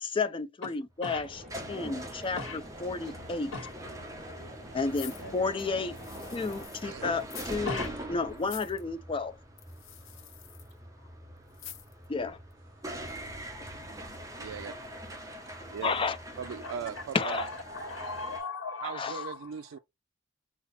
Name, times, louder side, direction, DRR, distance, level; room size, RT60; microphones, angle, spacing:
voice 1, 0.0-1.4 1.7-3.5 4.7-6.0 6.3-9.3 12.1-12.4 15.8-16.2 17.1-17.5 18.8-19.2, left 4 dB, 25° left, 0.4 m, -32 dB
sound 1, 0.9-18.4, right 1 dB, 15° right, 1.1 m, -43 dB
sound 2, 1.1-6.7, equal, 40° right, 2.7 m, -49 dB
sound 3, 4.9-6.9 7.2-7.6 7.8-7.9 8.4-8.8 9.6-10.7 11.5-12.1 12.5-12.6, left 11 dB, 70° left, 0.7 m, -47 dB
voice 2, 5.2-5.8 7.7-8.0 16.6-16.7 17.2-19.4, left 3 dB, 90° left, 1.1 m, -38 dB
voice 3, 14.4-14.7 15.2-15.3 15.7-15.9 16.4-17.4 18.8-19.8, right 7 dB, 75° right, 0.3 m, -39 dB
5.7 x 2.0 x 4.2 m
head